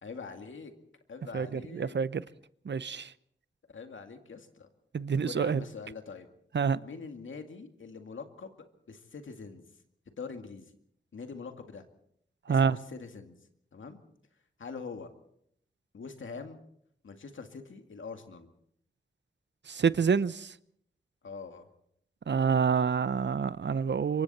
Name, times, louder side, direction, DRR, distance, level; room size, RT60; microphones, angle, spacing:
voice 1, 0.0-0.7 1.1-2.0 3.7-4.7 5.2-6.3 6.8-8.6 8.9-9.6 10.2-10.6 11.1-11.8 12.5-13.4 13.7-14.0 14.6-15.1 15.9-16.6 17.0-18.5 21.2-21.7, left 5 dB, 90° left, 6 dB, 2.2 m, -43 dB
voice 2, 1.7-2.2 2.7-3.1 4.9-5.6 6.5-6.8 12.5-12.8 19.7-20.5 22.3-24.2, right 6 dB, 65° right, 17 dB, 0.8 m, -27 dB
26.0 x 23.5 x 4.3 m, 0.68 s
wide cardioid pair, 65°, 20 cm